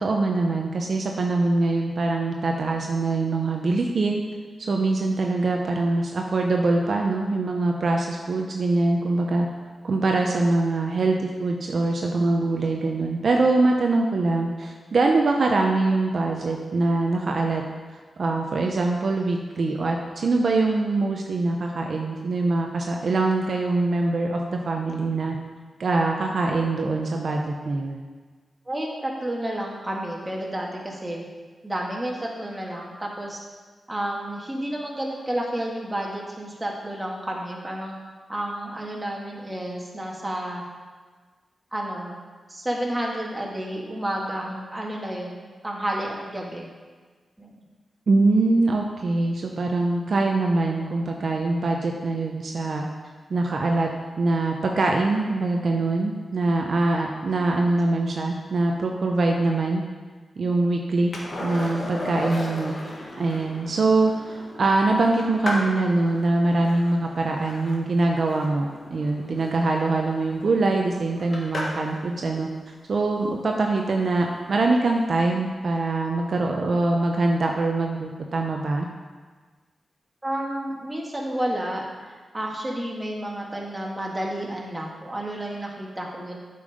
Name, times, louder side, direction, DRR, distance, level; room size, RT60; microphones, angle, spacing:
voice 1, 0.0-4.2 4.6-9.5 9.8-17.6 18.2-25.4 25.8-28.0 48.1-52.9 53.3-53.9 54.2-59.8 60.4-61.1 61.4-62.7 63.2-72.5 72.9-78.9, right 2 dB, 65° right, 1 dB, 0.8 m, -23 dB
voice 2, 28.7-31.2 31.6-33.4 33.9-37.9 38.3-40.6 41.7-42.1 42.5-45.4 45.6-46.7 47.4-47.6 52.9-53.0 80.2-86.4, right 1 dB, 20° right, -2 dB, 2.1 m, -31 dB
Skateboard, 61.1-72.0 74.6-74.7, left 1 dB, 60° left, 1.9 m, -36 dB
8.3 x 5.5 x 5.1 m, 1.4 s
cardioid pair, 50°, 0 cm